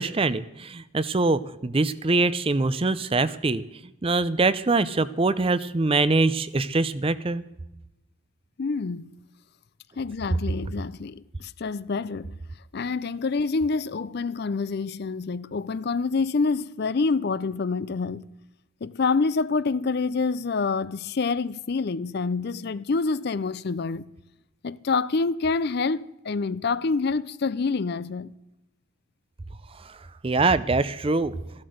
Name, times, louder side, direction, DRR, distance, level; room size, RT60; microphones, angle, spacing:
voice 1, 0.0-3.6 4.0-7.4 29.8-30.0 30.2-31.4, right 3 dB, 25° right, 0.5 m, -23 dB
voice 2, 8.6-9.1 10.0-12.3 12.7-18.3 18.8-24.0 24.6-28.3, left 4 dB, 50° left, 0.4 m, -27 dB
15.0 x 11.5 x 6.5 m
head